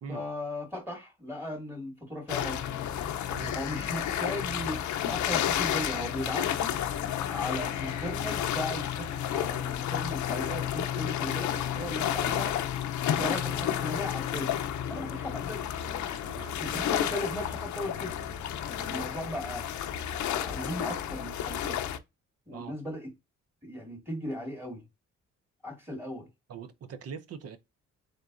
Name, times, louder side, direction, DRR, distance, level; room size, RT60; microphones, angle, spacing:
voice 1, 0.1-2.7 3.5-4.8 5.1-6.7 7.3-12.6 13.2-14.6 14.9-15.6 16.6-18.2 18.7-19.6 20.3-21.8 22.5-23.1 23.6-24.9 25.6-26.3, left 1 dB, 5° right, 2.3 m, -37 dB
sound 1, 2.3-22.0, left 10 dB, 70° left, 0.6 m, -31 dB
voice 2, 16.3-16.6 22.5-22.8 26.5-27.6, right 6 dB, 55° right, 0.7 m, -42 dB
3.8 x 3.8 x 2.4 m
cardioid pair, 90°, 30 cm